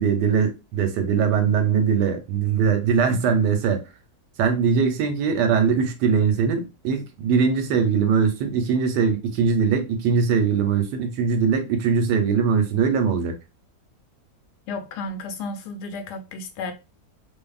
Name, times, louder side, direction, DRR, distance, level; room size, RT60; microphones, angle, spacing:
voice 1, 0.0-3.8 4.4-13.4, right 6 dB, 90° right, 1.3 m, -21 dB
voice 2, 14.7-16.7, left 3 dB, 80° left, 1.2 m, -33 dB
2.7 x 2.5 x 2.2 m
omnidirectional pair, 1.8 m